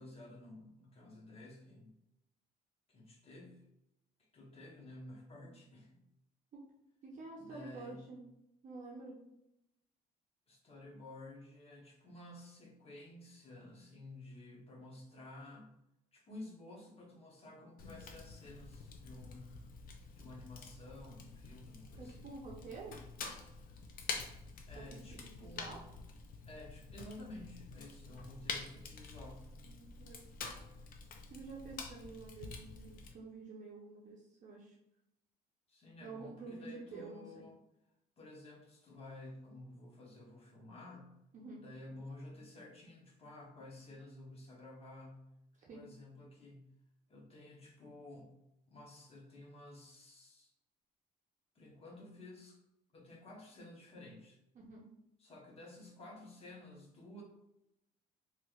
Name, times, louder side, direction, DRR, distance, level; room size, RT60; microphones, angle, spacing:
voice 1, 0.0-1.9 2.9-3.6 4.2-6.0 7.4-8.0 10.5-15.7 16.1-19.6 20.1-22.3 24.7-25.9 26.5-29.5 35.7-37.6 38.2-41.1 41.6-45.2 45.7-46.7 47.1-48.3 48.7-50.5 51.5-52.6 52.9-54.4 55.2-57.2, left 2 dB, 35° left, -1 dB, 1.0 m, -52 dB
voice 2, 7.0-8.2 8.6-9.2 22.0-23.0 24.8-25.8 29.6-30.2 31.3-34.8 36.0-37.4 41.3-41.6 45.7-45.8 54.5-54.8, right 3 dB, 50° right, -3 dB, 0.7 m, -49 dB
Fire, 17.8-33.1, left 4 dB, 55° left, 0.5 m, -48 dB
3.2 x 3.1 x 2.3 m, 0.85 s
cardioid pair, 110°, 17 cm